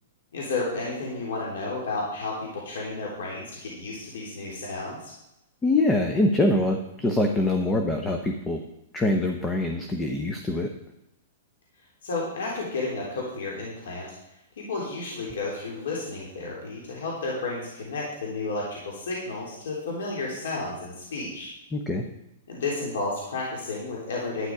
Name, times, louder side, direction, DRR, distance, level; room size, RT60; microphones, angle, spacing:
voice 1, 0.3-5.1 12.0-14.1 14.6-21.5 22.5-24.5, left 3 dB, 80° left, -3 dB, 3.6 m, -32 dB
voice 2, 5.6-8.6 8.9-10.7 21.7-22.0, left 2 dB, 10° left, 4 dB, 0.8 m, -24 dB
11.5 x 9.7 x 4.8 m, 0.87 s
hypercardioid pair, 160°, 0 cm